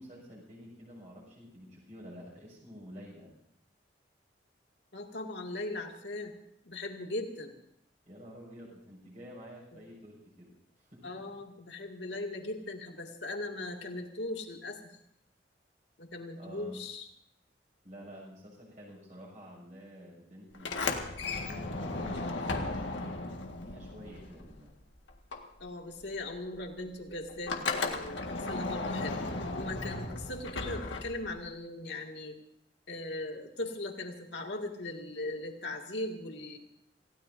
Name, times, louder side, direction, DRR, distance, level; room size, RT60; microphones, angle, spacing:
voice 1, 0.0-3.3 8.0-10.5 10.8-11.3 16.3-16.8 17.8-24.7, equal, 40° right, -3 dB, 6.5 m, -49 dB
voice 2, 4.9-6.3 6.6-7.5 9.7-9.8 11.0-14.8 16.0-17.1 25.6-29.2 29.5-32.4 32.9-36.6, left 2 dB, 70° left, 2 dB, 2.3 m, -39 dB
Sliding door, 20.5-24.8 25.1-31.5, left 3 dB, 90° left, 1.8 m, -35 dB
27.5 x 16.5 x 2.7 m, 0.74 s
head